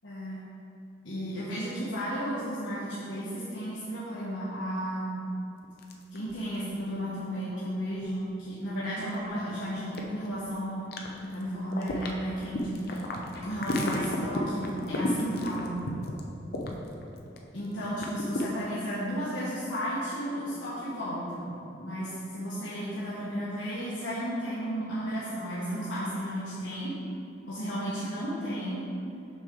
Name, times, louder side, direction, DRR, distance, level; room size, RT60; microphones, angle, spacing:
voice 1, 0.0-0.4 1.0-5.2 6.1-10.9 11.2-13.1 13.3-15.8 17.5-27.0 27.5-28.8, equal, 75° left, -10 dB, 1.3 m, -33 dB
sound 1, 5.6-6.6 6.9-7.0 7.5-8.1 8.7-8.8 9.1-9.3 9.9-10.5 10.9-11.4 11.7-17.4 17.6-18.4, left 2 dB, 55° left, 0.7 m, -33 dB
6.6 x 6.0 x 3.7 m, 2.7 s
head